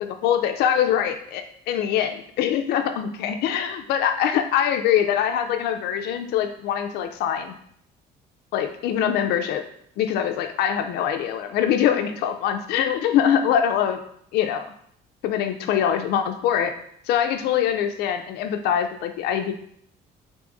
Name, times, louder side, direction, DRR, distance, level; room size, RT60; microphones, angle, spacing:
voice 1, 0.2-7.6 8.5-9.6 10.0-14.0 14.3-14.7 15.2-16.7 17.1-19.5, left 9 dB, 75° left, 6 dB, 0.4 m, -23 dB
3.5 x 3.4 x 2.5 m, 0.67 s
cardioid pair, 110°, 17 cm